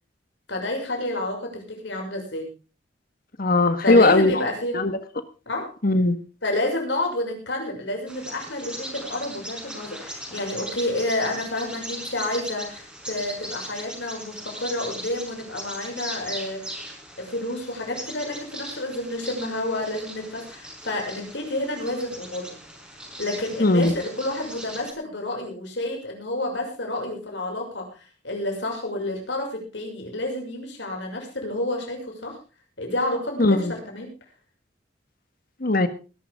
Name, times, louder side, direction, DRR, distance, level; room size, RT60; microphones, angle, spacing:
voice 1, 0.5-2.5 3.8-4.7 5.5-5.7 6.4-16.9 17.2-22.6 23.2-32.4 32.8-34.1, left 1 dB, 80° left, 2 dB, 6.4 m, -29 dB
voice 2, 3.4-4.4 4.7-5.0 5.8-6.2 23.6-23.9 33.4-33.7 35.6-35.9, left 2 dB, 55° left, 11 dB, 1.6 m, -19 dB
Bird vocalization bird call bird song, 8.1-24.9, equal, 5° right, 4.9 m, -39 dB
20.5 x 12.0 x 3.7 m, 0.33 s
head